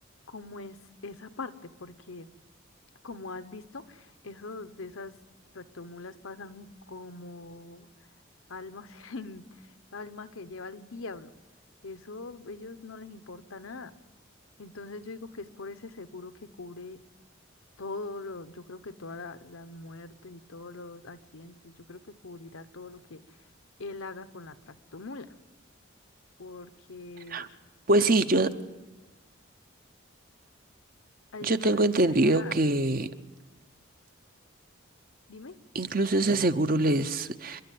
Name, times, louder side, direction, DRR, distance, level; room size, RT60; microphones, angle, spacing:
voice 1, 0.3-0.8 1.0-2.3 3.0-5.2 5.5-7.9 8.5-11.3 11.8-13.9 14.6-17.0 17.8-23.4 23.8-25.3 26.4-27.6 28.0-28.2 31.3-32.6 35.3-35.6, left 3 dB, 80° left, 10 dB, 1.1 m, -42 dB
voice 2, 27.9-28.5 31.4-33.1 35.7-37.6, right 2 dB, 45° right, 11 dB, 0.8 m, -24 dB
29.0 x 11.5 x 9.3 m, 1.2 s
head